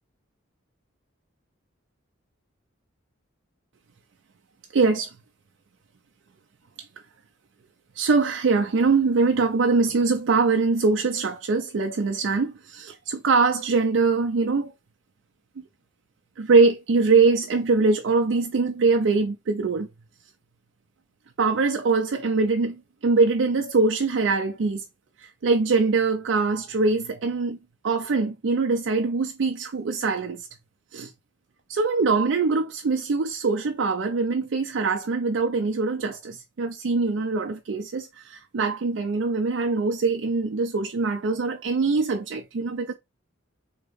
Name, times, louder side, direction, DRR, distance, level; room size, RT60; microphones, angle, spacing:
voice 1, 4.7-5.1 6.8-6.9 8.0-14.7 15.6-15.7 16.4-19.9 21.4-24.8 25.2-27.6 27.8-30.5 30.9-31.1 31.7-42.9, right 4 dB, 65° right, 0.4 m, -23 dB
3.9 x 2.8 x 3.4 m
head